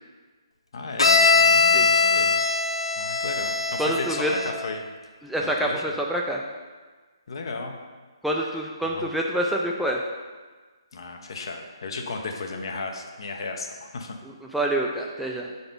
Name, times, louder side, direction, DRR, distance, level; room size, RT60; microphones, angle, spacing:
voice 1, 0.7-2.4 3.0-4.9 5.4-5.8 7.3-7.8 8.4-8.5 8.8-9.1 10.9-14.2, left 3 dB, 60° left, 3 dB, 0.9 m, -35 dB
Bowed string instrument, 1.0-4.7, left 4 dB, 85° left, 0.6 m, -21 dB
voice 2, 3.8-4.3 5.2-6.4 8.2-10.0 14.5-15.5, right 1 dB, ahead, -2 dB, 0.4 m, -26 dB
5.9 x 4.0 x 5.2 m, 1.4 s
hypercardioid pair, 155°, 3 cm